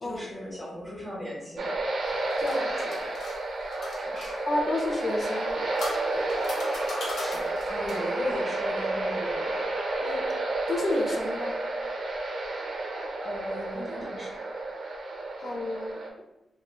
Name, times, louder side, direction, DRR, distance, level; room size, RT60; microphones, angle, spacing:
voice 1, 0.0-1.8 4.0-4.4 7.2-9.5 13.2-14.3, left 1 dB, 25° right, -7 dB, 1.0 m, -37 dB
sound 1, 1.6-16.1, right 2 dB, 70° right, 0.5 m, -31 dB
sound 2, 2.0-4.3 5.3-8.1, left 2 dB, 85° left, 0.7 m, -40 dB
voice 2, 2.4-3.0 4.5-5.6 10.0-10.2 10.7-11.6 15.4-16.0, left 2 dB, 45° left, 1 dB, 0.5 m, -30 dB
3.0 x 2.1 x 2.2 m, 0.92 s
cardioid pair, 95°, 0 cm